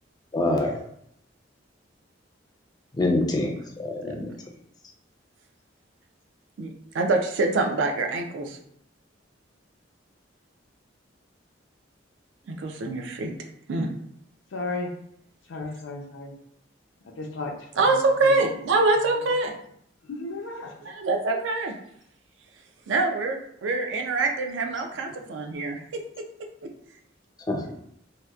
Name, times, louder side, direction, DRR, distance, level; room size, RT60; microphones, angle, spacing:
voice 1, 0.3-0.8 2.9-4.3 27.5-27.7, left 2 dB, 20° left, 2 dB, 0.4 m, -25 dB
voice 2, 6.6-8.6 12.5-13.3 13.7-13.9 17.7-19.5 20.8-21.7 22.9-26.3, right 3 dB, 70° right, 3 dB, 0.4 m, -25 dB
voice 3, 14.5-14.9 15.5-16.3 17.2-17.5 20.1-20.7, left 3 dB, 80° left, 2 dB, 0.5 m, -33 dB
2.7 x 2.1 x 2.3 m, 0.69 s
head